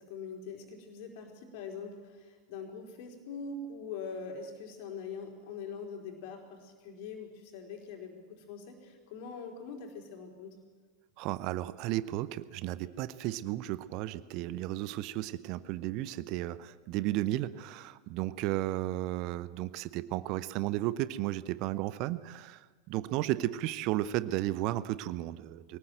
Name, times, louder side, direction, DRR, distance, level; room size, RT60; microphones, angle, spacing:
voice 1, 0.0-10.5, left 5 dB, 45° left, 2 dB, 4.1 m, -43 dB
voice 2, 11.2-25.8, right 15 dB, 40° right, 16 dB, 0.7 m, -34 dB
22.5 x 19.0 x 7.9 m, 1.5 s
figure-of-eight pair, 90°, 0 cm